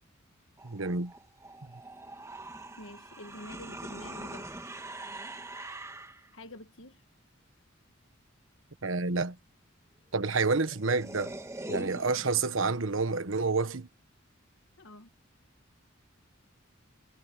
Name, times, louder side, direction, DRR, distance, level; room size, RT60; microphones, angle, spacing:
sound 1, 0.6-6.3 10.2-10.3 10.5-12.5, right 2 dB, 15° right, 1.9 m, -43 dB
voice 1, 0.6-1.1 1.6-1.7 8.8-9.4 10.1-11.3 11.7-13.9, right 4 dB, 75° right, 1.3 m, -29 dB
voice 2, 2.8-4.5 6.3-7.0 14.8-15.1, left 1 dB, 70° left, 1.4 m, -47 dB
head